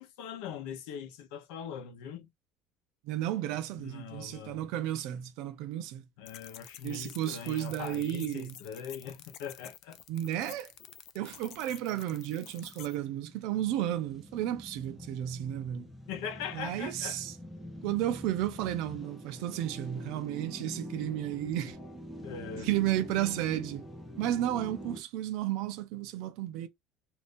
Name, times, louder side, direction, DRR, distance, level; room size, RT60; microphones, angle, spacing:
voice 1, 0.0-2.3 3.8-4.6 6.2-10.0 16.1-17.2 22.2-22.7, left 7 dB, 75° left, 0.8 m, -41 dB
voice 2, 3.0-6.1 6.8-8.5 10.1-10.7 11.1-15.9 16.5-17.3 17.8-21.8 22.6-23.8 24.2-26.7, right 12 dB, 60° right, 0.5 m, -33 dB
sound 1, 6.3-13.0, left 11 dB, 40° left, 0.4 m, -50 dB
sound 2, 11.7-25.0, equal, 5° left, 0.7 m, -45 dB
2.7 x 2.6 x 3.5 m
cardioid pair, 180°, 0 cm